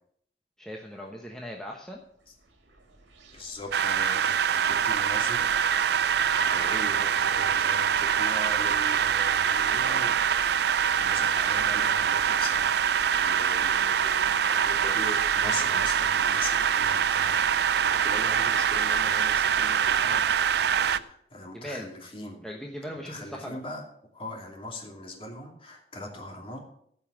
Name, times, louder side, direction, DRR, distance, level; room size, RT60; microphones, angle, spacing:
voice 1, 0.6-2.0 11.2-11.3 21.5-21.9 22.4-23.6, equal, 5° left, -1 dB, 1.1 m, -39 dB
sound 1, 1.9-21.0, right 2 dB, 90° right, 2.1 m, -45 dB
voice 2, 3.3-5.9 6.3-10.2 11.0-20.2 20.9-22.4 23.0-23.8 24.1-26.6, left 1 dB, 30° left, 1 dB, 2.6 m, -40 dB
sound 2, 3.7-21.0, right 8 dB, 60° right, 0.4 m, -24 dB
15.0 x 5.6 x 7.3 m, 0.68 s
head